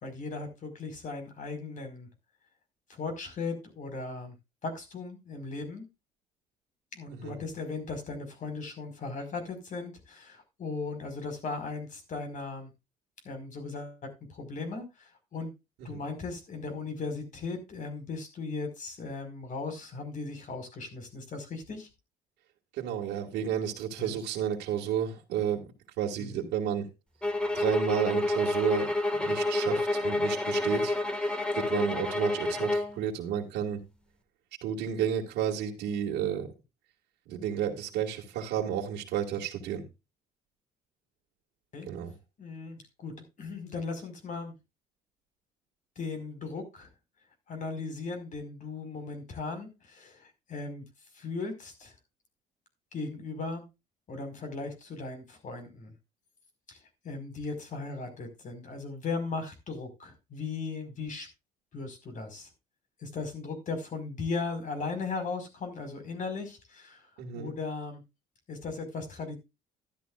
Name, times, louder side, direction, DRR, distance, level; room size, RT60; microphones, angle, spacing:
voice 1, 0.0-2.1 2.9-4.3 4.6-5.9 6.9-12.7 13.3-14.0 14.3-15.5 15.8-21.9 24.0-24.2 26.2-26.5 41.7-41.9 42.4-43.1 43.4-44.5 46.0-46.9 47.5-50.8 51.1-51.9 52.9-53.7 54.1-55.9 56.7-56.8 57.0-61.3 61.7-62.5 63.0-67.1 67.3-68.0 68.5-69.4, left 4 dB, 50° left, 6 dB, 5.2 m, -37 dB
voice 2, 22.7-25.7 26.0-26.9 27.5-28.9 29.2-33.8 34.6-36.5 37.3-39.8 41.9-42.1 67.2-67.5, right 9 dB, 85° right, -4 dB, 2.3 m, -31 dB
sound 1, 27.2-33.0, left 2 dB, 5° left, 1.9 m, -29 dB
13.5 x 12.5 x 2.5 m, 0.26 s
cardioid pair, 110°, 17 cm